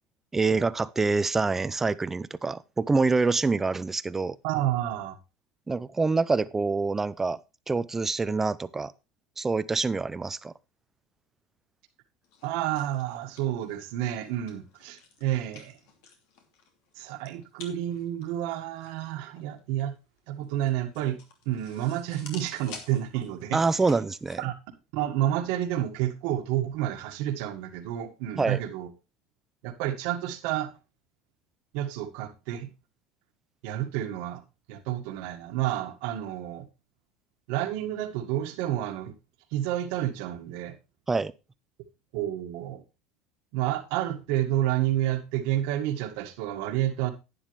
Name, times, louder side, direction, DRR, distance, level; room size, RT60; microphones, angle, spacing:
voice 1, 0.3-4.4 5.7-7.4 7.7-8.9 9.4-10.5 23.5-24.4 28.3-28.6 41.1-41.3, right 3 dB, 15° right, 0.6 m, -26 dB
voice 2, 4.4-5.2 12.4-15.8 17.0-19.9 20.3-21.2 21.5-23.6 24.4-24.5 24.9-28.9 29.6-30.7 31.7-32.7 33.6-34.4 34.7-36.7 37.5-39.1 39.5-40.7 42.1-42.8 43.5-47.1, right 12 dB, 70° right, 1.7 m, -30 dB
sound 1, 12.2-24.4, left 5 dB, 70° left, 2.9 m, -51 dB
11.5 x 9.6 x 3.2 m
supercardioid pair, 115°, 2 cm